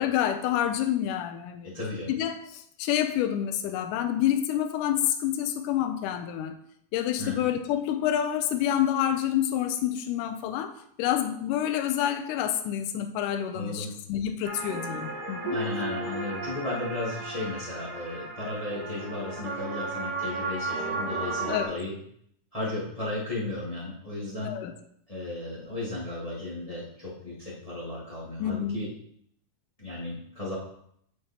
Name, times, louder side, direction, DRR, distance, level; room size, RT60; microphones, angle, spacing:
voice 1, 0.0-1.7 2.1-6.6 6.9-15.6 21.5-21.7 24.4-24.7 28.4-28.8, left 10 dB, 85° left, 7 dB, 2.1 m, -28 dB
voice 2, 1.6-2.1 7.2-7.4 13.5-13.9 15.5-22.0 22.5-24.5 25.1-28.9 29.8-30.6, left 2 dB, 15° left, -5 dB, 1.3 m, -35 dB
sound 1, 14.4-21.7, right 3 dB, 80° right, 3.5 m, -34 dB
9.1 x 4.7 x 4.2 m, 0.69 s
omnidirectional pair, 3.7 m